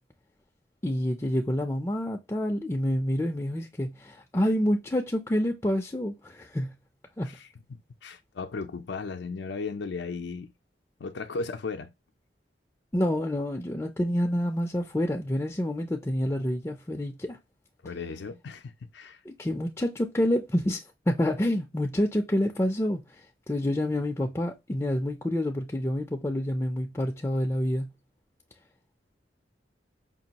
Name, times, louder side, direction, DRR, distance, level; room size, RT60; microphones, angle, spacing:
voice 1, 0.8-6.7 7.2-7.3 12.9-17.4 19.3-23.2 23.5-27.9, left 1 dB, 15° left, 0.4 m, -28 dB
voice 2, 7.3-10.5 11.0-11.9 17.8-19.2, left 4 dB, 70° left, 0.4 m, -36 dB
5.2 x 2.3 x 2.8 m
head